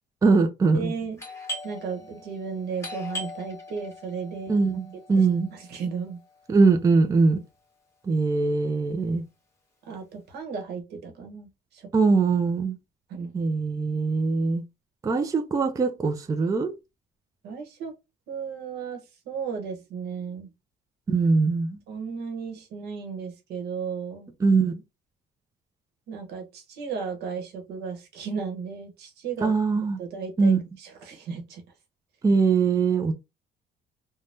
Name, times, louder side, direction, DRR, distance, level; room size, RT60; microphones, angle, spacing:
voice 1, 0.2-0.9 4.5-5.5 6.5-7.4 8.1-9.2 11.9-12.8 13.3-14.6 15.0-16.7 21.1-21.8 24.4-24.8 29.4-30.0 30.4-30.6 32.2-33.1, right 4 dB, 20° right, 0.4 m, -22 dB
voice 2, 0.7-1.2 1.6-4.6 5.1-5.2 5.5-6.2 9.9-11.9 13.1-13.3 17.4-17.9 18.3-19.0 19.3-20.5 21.9-24.3 26.1-29.5 30.0-31.6, right 5 dB, 75° right, 1.0 m, -34 dB
Doorbell, 1.2-6.6, left 1 dB, 15° left, 1.4 m, -40 dB
3.3 x 2.2 x 2.6 m
cardioid pair, 110°, 17 cm